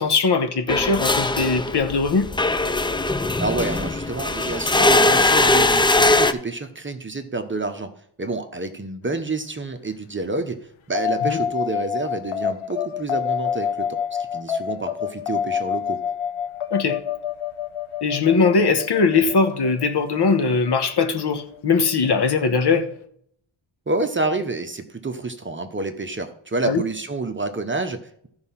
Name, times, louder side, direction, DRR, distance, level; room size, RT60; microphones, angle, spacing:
voice 1, 0.0-2.3 11.2-11.4 16.7-17.0 18.0-22.9 26.6-26.8, left 4 dB, 55° left, 1.2 m, -20 dB
sound 1, 0.7-6.3, left 2 dB, 10° left, 0.4 m, -20 dB
voice 2, 3.4-7.9 8.2-10.6 10.9-16.0 23.9-28.3, right 3 dB, 25° right, 0.8 m, -28 dB
sound 2, 11.0-21.7, left 8 dB, 75° left, 0.9 m, -28 dB
13.5 x 4.8 x 5.7 m
wide cardioid pair, 115°, 49 cm